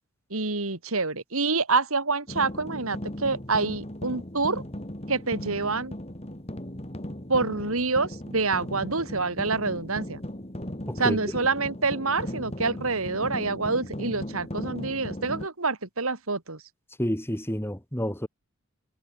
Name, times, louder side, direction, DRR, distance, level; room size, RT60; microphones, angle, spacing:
voice 1, 0.3-4.6 5.1-5.9 7.3-10.2 11.0-16.6, right 3 dB, 75° right, 2.7 m, -27 dB
sound 1, 2.3-15.5, equal, 30° left, 3.1 m, -37 dB
voice 2, 10.9-11.2 17.0-18.3, equal, 10° left, 3.2 m, -29 dB
head